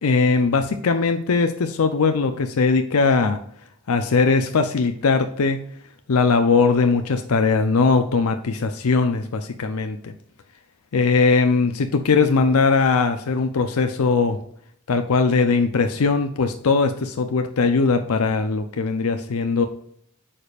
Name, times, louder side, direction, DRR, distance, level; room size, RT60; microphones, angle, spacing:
voice 1, 0.0-3.4 3.9-5.6 6.1-10.1 10.9-14.4 14.9-19.7, left 4 dB, 90° left, 7 dB, 0.6 m, -20 dB
8.6 x 5.1 x 2.4 m, 0.66 s
head